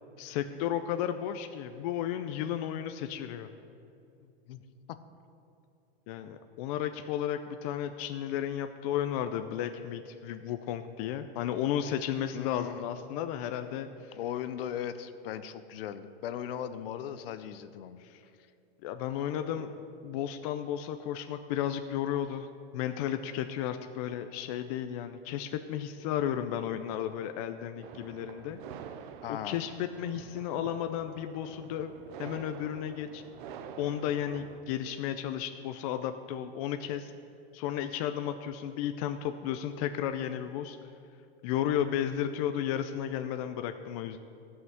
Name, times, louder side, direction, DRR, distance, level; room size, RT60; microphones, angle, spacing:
voice 1, 0.2-3.5 6.1-14.2 18.0-18.2 18.8-19.7 20.0-22.5 22.7-28.6 29.3-31.9 32.2-33.2 33.8-37.1 37.5-40.8 41.4-44.2, left 10 dB, 35° left, 8 dB, 0.4 m, -33 dB
voice 2, 4.2-4.6 4.9-5.0 12.3-12.9 14.1-18.0 19.6-19.7 29.2-29.7, left 9 dB, 65° left, 12 dB, 0.7 m, -38 dB
sound 1, 27.8-34.6, right 8 dB, 50° right, 0.7 m, -47 dB
13.0 x 5.7 x 7.8 m, 2.6 s
supercardioid pair, 150°, 31 cm